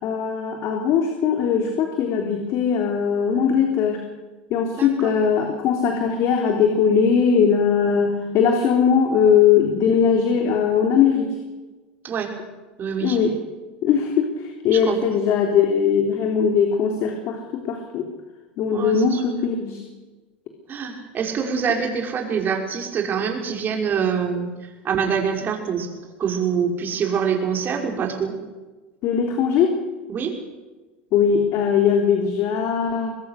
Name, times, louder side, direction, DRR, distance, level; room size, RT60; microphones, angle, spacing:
voice 1, 0.0-4.0 4.5-11.3 13.0-13.3 13.8-18.1 18.6-19.8 29.0-29.7 31.1-33.1, left 7 dB, 50° left, 3 dB, 3.6 m, -20 dB
voice 2, 4.7-5.1 12.0-12.3 12.8-13.2 14.7-15.0 18.7-19.2 20.7-24.5 24.8-25.9 26.2-28.4 30.1-30.3, right 6 dB, 35° right, 3 dB, 5.6 m, -25 dB
24.5 x 21.0 x 6.7 m, 1.2 s
hypercardioid pair, 105°, 6 cm